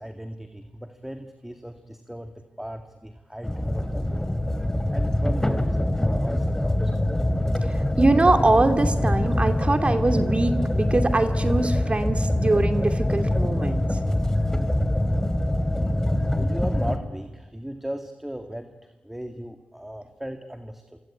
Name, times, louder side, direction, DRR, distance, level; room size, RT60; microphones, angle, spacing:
voice 1, 0.0-4.4 4.9-7.0 16.3-18.8 19.0-21.0, equal, 10° right, 6 dB, 2.1 m, -37 dB
sound 1, 3.4-17.0, left 1 dB, 15° left, 3.0 m, -24 dB
voice 2, 7.6-14.0, right 2 dB, 35° right, 7 dB, 2.6 m, -23 dB
27.0 x 24.5 x 8.8 m, 1.1 s
cardioid pair, 45°, 3 cm